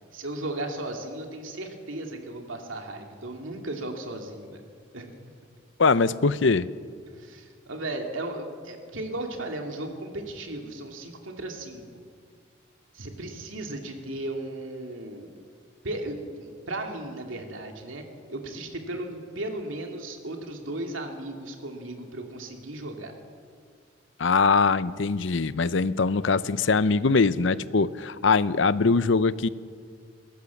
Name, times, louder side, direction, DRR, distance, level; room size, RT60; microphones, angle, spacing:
voice 1, 0.1-4.6 4.9-5.1 7.1-11.8 12.9-15.3 15.8-18.0 18.3-23.1, right 1 dB, 80° right, 2 dB, 2.7 m, -35 dB
voice 2, 5.8-6.7 24.2-29.5, left 4 dB, 70° left, 15 dB, 0.7 m, -22 dB
21.5 x 17.0 x 7.2 m, 2.1 s
head